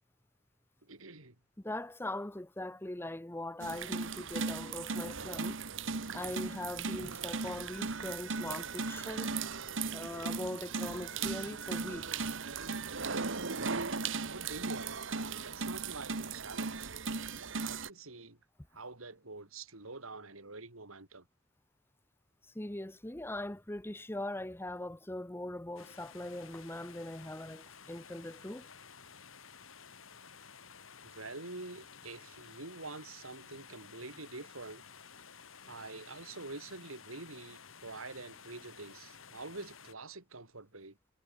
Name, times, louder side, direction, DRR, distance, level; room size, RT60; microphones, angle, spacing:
voice 1, 0.8-1.4 14.2-16.9 17.6-18.4 18.7-21.3 31.0-34.9 35.6-41.0, right 3 dB, 85° right, 3.7 m, -46 dB
voice 2, 1.6-5.6 6.1-9.3 9.9-12.3 22.5-28.7, left 1 dB, 10° left, 0.9 m, -41 dB
sound 1, 3.6-17.9, right 4 dB, 65° right, 1.6 m, -37 dB
sound 2, 25.8-39.9, left 6 dB, 75° left, 3.5 m, -54 dB
head